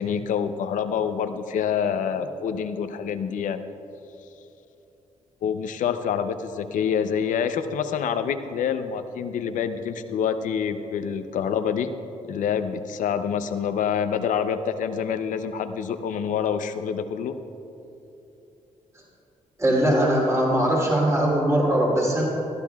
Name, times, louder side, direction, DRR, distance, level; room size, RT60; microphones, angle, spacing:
voice 1, 0.0-3.7 5.4-11.9 12.3-17.3, left 7 dB, 85° left, 9 dB, 0.6 m, -26 dB
voice 2, 19.6-22.2, right 1 dB, 25° right, -4 dB, 2.9 m, -21 dB
19.0 x 13.0 x 2.4 m, 2.9 s
cardioid pair, 100°, 13 cm